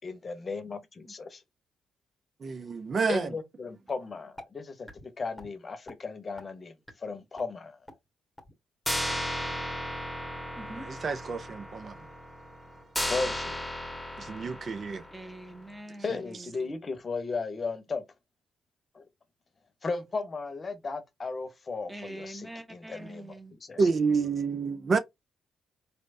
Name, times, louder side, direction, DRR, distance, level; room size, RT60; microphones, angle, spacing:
voice 1, 0.0-1.4 3.1-7.8 13.1-13.6 16.0-18.1 18.9-19.0 19.8-23.2 23.6-23.8, left 4 dB, 40° left, 0.9 m, -35 dB
voice 2, 2.4-3.3 10.8-12.0 14.2-15.0 23.8-25.0, right 4 dB, 45° right, 0.5 m, -29 dB
sound 1, 3.9-4.0 4.4-4.5 4.9-5.0 5.4-5.5 5.9-6.0 6.4-6.5 6.9-7.0 7.4-7.5 7.9-8.0 8.4-8.5 8.8-15.5, left 1 dB, 5° left, 1.4 m, -35 dB
voice 3, 10.5-10.9 15.1-16.7 21.9-23.5, right 1 dB, 10° right, 1.3 m, -44 dB
4.1 x 3.2 x 2.6 m
hypercardioid pair, 45°, 0 cm